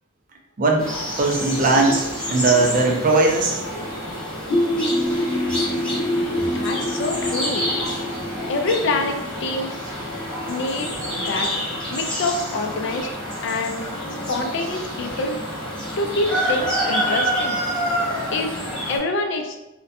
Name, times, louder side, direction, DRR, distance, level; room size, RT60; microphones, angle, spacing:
voice 1, 0.6-0.9 1.2-3.6, right 3 dB, 40° right, 1 dB, 0.4 m, -19 dB
sound 1, 0.8-19.0, equal, 5° left, 0.6 m, -28 dB
sound 2, 4.5-10.1, left 1 dB, 85° left, 0.7 m, -26 dB
voice 2, 6.4-7.7 8.5-9.9 10.5-11.5 11.9-13.1 13.4-15.4 16.0-17.6 18.3-18.6 18.9-19.6, left 2 dB, 55° left, 4 dB, 0.3 m, -26 dB
2.5 x 2.1 x 2.6 m, 0.97 s
head